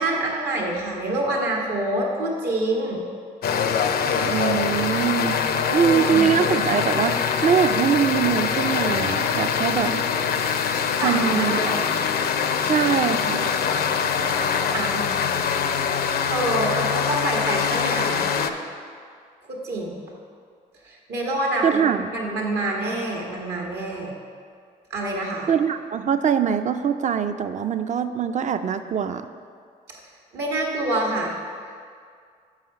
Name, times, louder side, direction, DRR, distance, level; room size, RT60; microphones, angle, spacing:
voice 1, 0.0-3.0 5.6-6.3 11.0-11.9 14.7-15.1 16.0-18.5 19.5-20.0 20.8-24.1 24.9-25.5 30.3-31.4, right 1 dB, 75° right, -1 dB, 1.4 m, -27 dB
sound 1, 3.4-18.5, left 7 dB, 60° left, 0.5 m, -23 dB
voice 2, 4.2-5.4 5.7-10.0 11.0-11.6 12.6-13.5 21.6-22.1 25.5-29.3, right 8 dB, 45° right, 10 dB, 0.4 m, -23 dB
5.5 x 4.8 x 5.7 m, 2.1 s
supercardioid pair, 60°, 18 cm